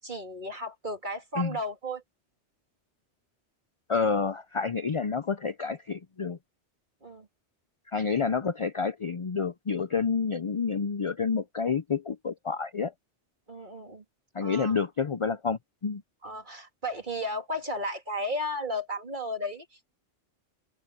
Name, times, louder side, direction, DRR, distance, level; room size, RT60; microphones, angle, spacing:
voice 1, 0.0-2.0 7.0-7.3 13.5-14.0 14.4-14.8 16.2-19.6, equal, 45° right, 3.1 m, -34 dB
voice 2, 3.9-6.4 7.9-12.9 14.3-16.0, left 5 dB, 40° left, 0.5 m, -29 dB
open air
omnidirectional pair, 1.2 m